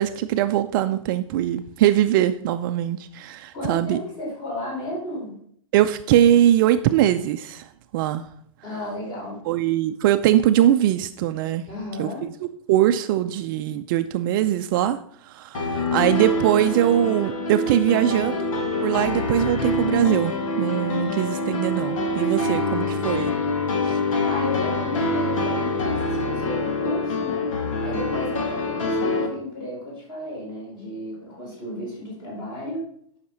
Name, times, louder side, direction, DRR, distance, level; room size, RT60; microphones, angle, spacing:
voice 1, 0.0-4.0 5.7-8.3 9.5-11.7 12.0-12.3 12.7-18.5 18.8-23.3 23.8-24.0, right 12 dB, 40° right, 9 dB, 0.5 m, -21 dB
voice 2, 3.5-5.4 8.6-9.4 11.7-12.3 22.5-23.0 24.2-32.9, left 1 dB, 25° left, -2 dB, 4.7 m, -33 dB
sound 1, 15.5-29.3, left 2 dB, 75° left, 2.2 m, -25 dB
10.5 x 5.8 x 5.6 m, 0.66 s
hypercardioid pair, 150°, 17 cm